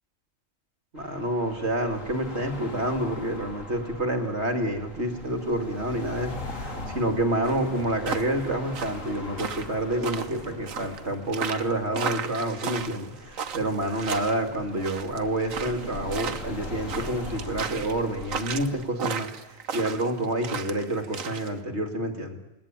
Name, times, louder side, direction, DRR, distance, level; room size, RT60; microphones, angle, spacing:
voice 1, 0.9-19.3 19.7-22.4, right 1 dB, 55° right, 6 dB, 2.8 m, -28 dB
sound 1, 1.0-18.9, left 2 dB, 80° left, 3.5 m, -41 dB
sound 2, 7.4-21.5, right 6 dB, 85° right, 1.5 m, -35 dB
28.5 x 19.5 x 9.0 m, 1.0 s
omnidirectional pair, 1.3 m